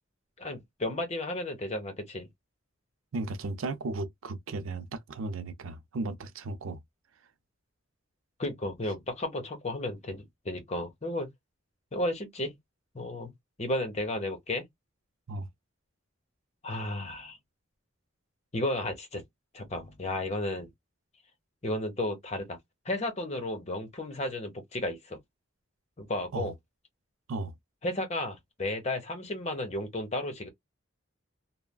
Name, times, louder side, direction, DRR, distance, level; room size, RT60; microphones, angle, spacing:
voice 1, 0.4-2.3 8.4-11.3 11.9-12.6 12.9-13.3 13.6-14.7 16.6-17.4 18.5-19.2 19.5-20.7 21.6-22.6 22.8-25.2 26.0-26.5 27.8-30.5, left 1 dB, 35° left, 0.9 m, -33 dB
voice 2, 3.1-6.8 15.3-15.5 26.3-26.5 27.3-27.5, right 2 dB, 80° right, 0.5 m, -35 dB
3.2 x 2.1 x 2.2 m
head